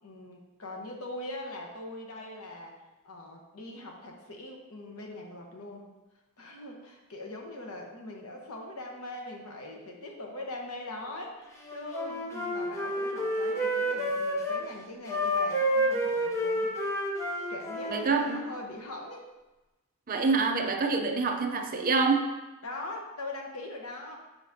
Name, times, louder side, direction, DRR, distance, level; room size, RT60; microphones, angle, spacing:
voice 1, 0.0-2.7 3.0-5.9 6.4-16.7 17.5-19.2 20.8-21.0 22.6-24.2, left 2 dB, 85° left, 0 dB, 1.1 m, -41 dB
Wind instrument woodwind instrument, 11.7-14.6 15.1-18.5, equal, 15° left, 0.7 m, -29 dB
voice 2, 17.9-18.4 20.1-22.3, right 4 dB, 40° right, 4 dB, 0.6 m, -26 dB
7.3 x 5.0 x 2.8 m, 1.1 s
head